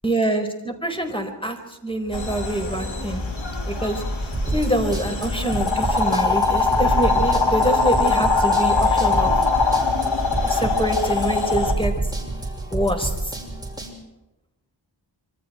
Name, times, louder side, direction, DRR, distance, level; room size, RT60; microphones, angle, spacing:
voice 1, 0.0-3.2 3.6-4.0 4.5-9.3 10.4-12.1 12.7-13.4, right 1 dB, 10° left, 4 dB, 4.9 m, -25 dB
sound 1, 2.1-11.7, left 4 dB, 90° left, 4.0 m, -22 dB
sound 2, 4.3-13.9, right 2 dB, 10° right, 6.1 m, -29 dB
27.0 x 25.0 x 4.6 m, 0.97 s
wide cardioid pair, 65°, 45 cm